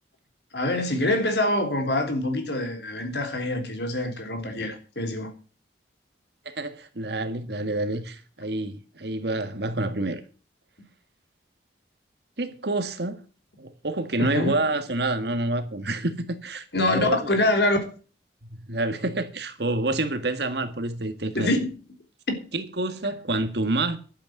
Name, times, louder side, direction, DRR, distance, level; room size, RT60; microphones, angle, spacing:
voice 1, 0.5-5.3 14.2-14.5 16.7-17.8 21.3-21.7 22.3-22.4, left 1 dB, 65° left, 3.5 m, -25 dB
voice 2, 6.5-10.2 12.4-13.2 13.6-17.3 18.4-21.5 22.5-24.0, right 2 dB, 65° right, 1.8 m, -28 dB
11.5 x 8.6 x 7.8 m
head